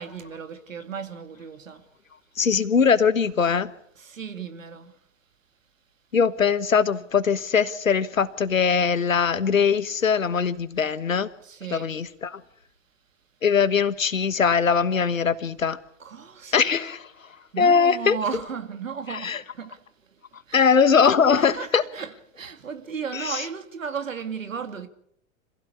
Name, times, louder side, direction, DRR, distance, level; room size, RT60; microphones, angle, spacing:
voice 1, 0.0-1.8 4.0-4.9 11.4-11.9 16.0-16.9 17.5-19.8 20.5-21.0 21.4-24.9, right 6 dB, 75° right, 2.4 m, -35 dB
voice 2, 2.4-3.7 6.1-11.3 11.7-12.4 13.4-15.8 16.5-17.1 17.6-18.2 19.1-19.4 20.5-21.8 23.1-23.4, left 6 dB, 80° left, 1.5 m, -21 dB
27.0 x 16.0 x 8.4 m
figure-of-eight pair, 90°, 39 cm